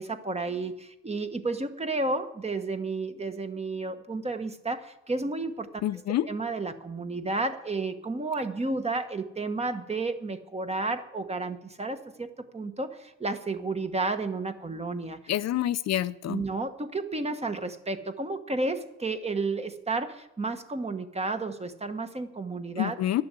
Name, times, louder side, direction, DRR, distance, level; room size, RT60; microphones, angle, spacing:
voice 1, 0.0-5.8 6.3-15.2 16.3-23.0, right 3 dB, 20° right, 8 dB, 1.1 m, -32 dB
voice 2, 5.8-6.3 15.3-16.4 22.8-23.2, left 13 dB, 60° left, 13 dB, 0.5 m, -27 dB
11.5 x 6.8 x 9.6 m, 0.86 s
cardioid pair, 90°, 30 cm